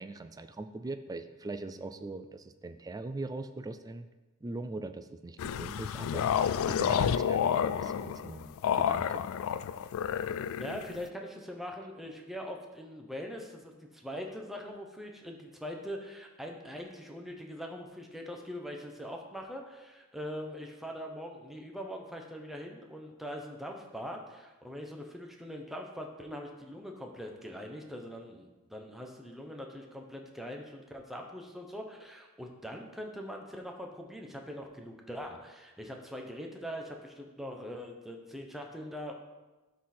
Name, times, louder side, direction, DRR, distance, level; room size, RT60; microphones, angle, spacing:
voice 1, 0.0-4.1 4.4-9.3, right 2 dB, 15° right, 9 dB, 0.3 m, -41 dB
sound 1, 5.4-11.1, left 8 dB, 65° left, 0.3 m, -30 dB
voice 2, 10.6-39.1, equal, ahead, 1 dB, 0.9 m, -42 dB
12.0 x 4.1 x 4.3 m, 1.1 s
head